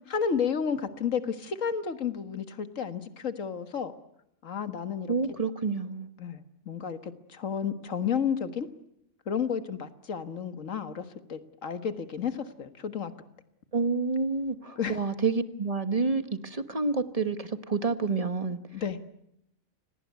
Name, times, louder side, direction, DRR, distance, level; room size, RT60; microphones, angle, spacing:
voice 1, 0.1-3.9 4.4-5.1 6.2-8.7 9.3-13.1 14.8-15.0 18.7-19.0, left 7 dB, 70° left, 10 dB, 1.9 m, -32 dB
voice 2, 5.1-6.1 13.7-18.6, right 4 dB, 30° right, 10 dB, 1.3 m, -28 dB
27.0 x 19.0 x 9.4 m, 0.80 s
omnidirectional pair, 1.4 m